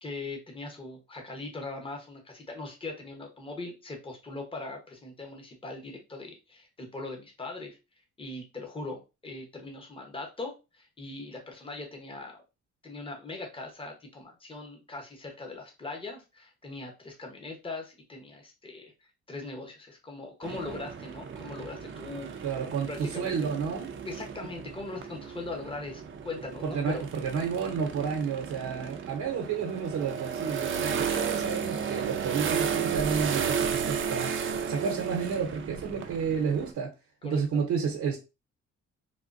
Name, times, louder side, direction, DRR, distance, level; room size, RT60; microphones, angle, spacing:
voice 1, 0.0-7.8 8.2-12.4 12.8-18.9 19.3-22.4 22.9-23.5 24.0-27.0 37.2-37.4, left 3 dB, 20° left, 0.9 m, -40 dB
sound 1, 20.4-36.7, right 7 dB, 40° right, 0.5 m, -34 dB
voice 2, 22.4-23.9 26.6-36.9 37.2-38.2, right 6 dB, 70° right, 0.8 m, -31 dB
3.5 x 2.2 x 2.5 m
cardioid pair, 90°, 30 cm